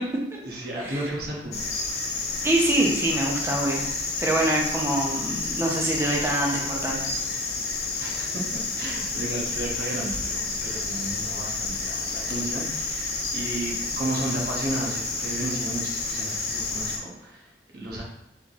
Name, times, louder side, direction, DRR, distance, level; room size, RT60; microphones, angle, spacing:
voice 1, 0.4-2.0 8.0-16.9 17.2-18.0, right 1 dB, 60° right, -3 dB, 1.2 m, -33 dB
sound 1, 1.5-17.0, left 3 dB, 60° left, 0.7 m, -30 dB
voice 2, 2.4-3.9 4.2-7.1, right 1 dB, 15° right, -1 dB, 0.7 m, -25 dB
4.1 x 3.6 x 3.0 m, 0.82 s
head